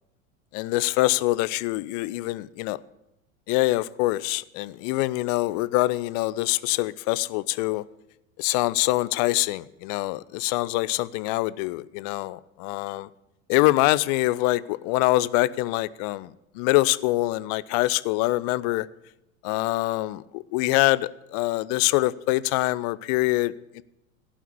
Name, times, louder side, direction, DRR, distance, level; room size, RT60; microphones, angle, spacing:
voice 1, 0.5-2.8 3.5-7.8 8.4-13.1 13.5-16.3 16.6-18.9 19.4-23.8, left 19 dB, 30° left, 0.4 m, -24 dB
15.5 x 5.8 x 8.5 m
figure-of-eight pair, 80°, 41 cm